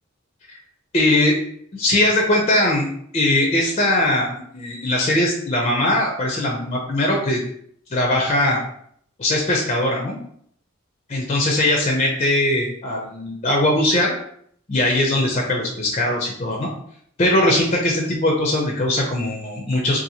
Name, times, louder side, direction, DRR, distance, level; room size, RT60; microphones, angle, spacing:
voice 1, 0.9-1.3 1.7-2.9 3.1-7.4 7.9-8.6 9.2-10.2 11.1-14.1 14.7-16.7 17.2-20.0, left 1 dB, 30° left, -1 dB, 0.5 m, -20 dB
2.7 x 2.5 x 2.7 m, 0.65 s
head